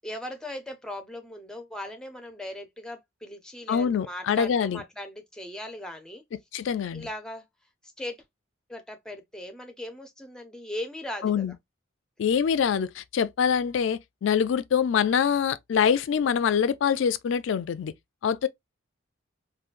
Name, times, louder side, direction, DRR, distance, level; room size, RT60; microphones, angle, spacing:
voice 1, 0.0-6.2 6.9-7.4 8.0-8.2 8.7-11.5, left 1 dB, 5° left, 0.5 m, -38 dB
voice 2, 3.7-4.8 6.5-7.1 11.2-11.5 12.2-17.9 18.2-18.5, left 7 dB, 65° left, 0.3 m, -24 dB
3.6 x 2.2 x 2.4 m
head